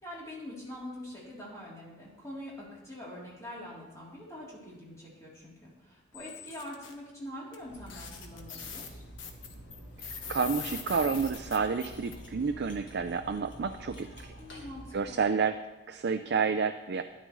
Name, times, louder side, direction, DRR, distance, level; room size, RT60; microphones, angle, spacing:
voice 1, 0.0-9.0 14.4-15.2, left 1 dB, 15° left, -7 dB, 3.2 m, -44 dB
sound 1, 6.1-6.9 7.5-7.6 7.9-12.1, left 6 dB, 80° left, 1.1 m, -42 dB
Cutlery silverware, 7.6-15.3, right 1 dB, 65° left, 1.7 m, -48 dB
voice 2, 10.3-14.3 14.9-15.6 15.9-17.0, right 5 dB, 60° right, 7 dB, 0.4 m, -30 dB
12.5 x 10.0 x 3.1 m, 1.1 s
head